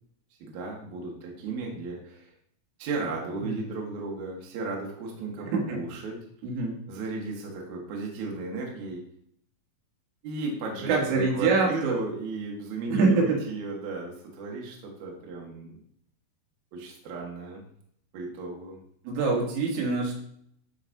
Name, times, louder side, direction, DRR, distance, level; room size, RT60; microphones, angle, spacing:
voice 1, 0.4-2.3 2.8-6.2 6.9-9.0 10.2-15.8 16.7-17.6 18.1-18.8, right 3 dB, 65° right, -1 dB, 1.9 m, -35 dB
voice 2, 5.4-5.9 6.4-6.8 10.8-12.0 12.9-13.4 19.1-20.1, right 4 dB, 80° right, -1 dB, 4.1 m, -25 dB
12.5 x 4.9 x 2.7 m, 0.68 s
omnidirectional pair, 5.6 m